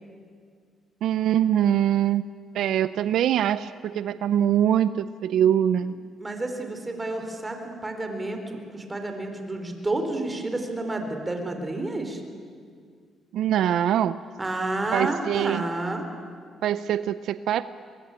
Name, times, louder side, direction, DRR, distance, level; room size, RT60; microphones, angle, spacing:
voice 1, 1.0-2.2 2.5-5.9 13.3-14.2 14.9-15.6 16.6-17.6, right 10 dB, 75° right, 15 dB, 0.5 m, -23 dB
voice 2, 6.2-12.2 14.4-16.1, right 2 dB, 20° right, 5 dB, 4.1 m, -30 dB
23.5 x 21.0 x 9.0 m, 2.1 s
cardioid pair, 90°, 0 cm